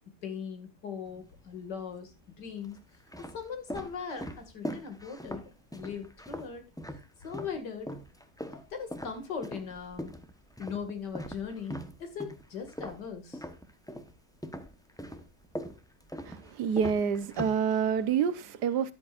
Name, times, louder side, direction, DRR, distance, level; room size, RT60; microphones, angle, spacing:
voice 1, 0.2-2.8 3.2-6.7 7.2-8.0 8.5-10.1 10.6-13.4, left 6 dB, 85° left, 2.7 m, -39 dB
sound 1, 1.1-1.8 2.5-7.6 7.9-14.1 14.4-18.1, equal, 5° left, 0.6 m, -41 dB
voice 2, 16.2-18.9, right 7 dB, 75° right, 1.5 m, -28 dB
13.0 x 10.5 x 2.5 m
omnidirectional pair, 1.8 m